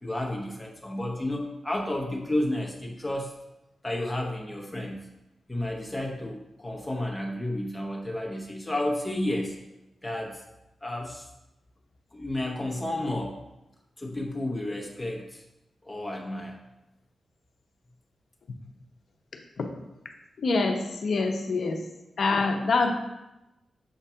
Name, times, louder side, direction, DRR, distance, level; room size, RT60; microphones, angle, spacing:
voice 1, 0.0-3.4 3.8-5.0 5.5-9.6 10.0-10.4 10.8-11.3 12.1-13.4 14.0-15.4 15.8-16.6, left 1 dB, 15° left, 0 dB, 0.9 m, -31 dB
voice 2, 20.4-21.8 22.2-22.9, left 3 dB, 65° left, 4 dB, 0.7 m, -25 dB
7.1 x 2.4 x 5.6 m, 0.95 s
wide cardioid pair, 105°, 0 cm